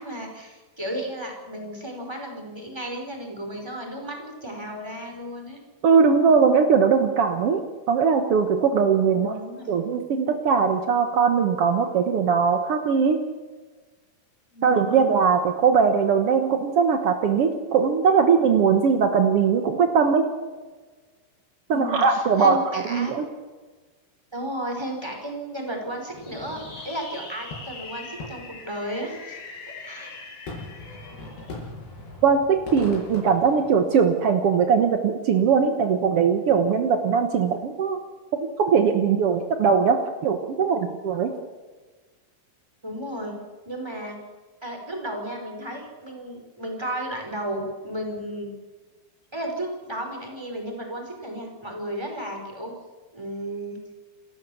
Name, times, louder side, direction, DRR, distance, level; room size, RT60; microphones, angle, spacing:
voice 1, 0.0-5.6 9.1-9.7 14.5-15.1 21.7-23.2 24.3-29.4 29.7-30.1 42.8-43.4 43.6-44.2 44.6-48.5 49.3-52.7 53.1-53.8, equal, 5° right, 2 dB, 4.6 m, -33 dB
voice 2, 5.8-7.6 7.9-9.3 9.7-13.2 14.6-20.2 21.7-23.3 32.2-38.0 38.3-41.3, right 6 dB, 75° right, 6 dB, 1.3 m, -20 dB
Fireworks, 26.1-34.3, left 2 dB, 85° left, 8.3 m, -39 dB
29.0 x 13.0 x 7.2 m, 1.3 s
omnidirectional pair, 4.5 m